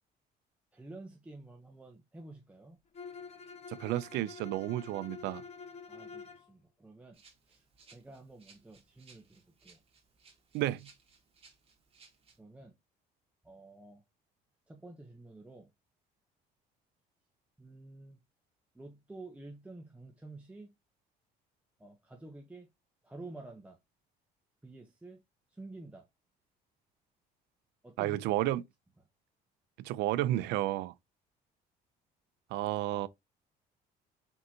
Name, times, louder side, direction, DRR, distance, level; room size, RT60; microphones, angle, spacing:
voice 1, 0.7-2.8 5.9-9.8 12.4-12.8 13.4-14.0 14.7-15.7 17.6-18.2 18.7-20.7 21.8-22.7 23.0-23.8 24.6-25.2 25.5-26.1 27.8-28.2, right 2 dB, 10° right, 0.7 m, -50 dB
Bowed string instrument, 2.9-6.5, left 5 dB, 40° left, 0.8 m, -47 dB
voice 2, 3.7-5.4 10.5-10.9 28.0-28.6 29.8-30.9 32.5-33.1, right 15 dB, 85° right, 0.4 m, -32 dB
Rattle (instrument), 7.1-12.4, right 4 dB, 35° right, 1.8 m, -62 dB
4.5 x 3.8 x 2.7 m
cardioid pair, 110°, 17 cm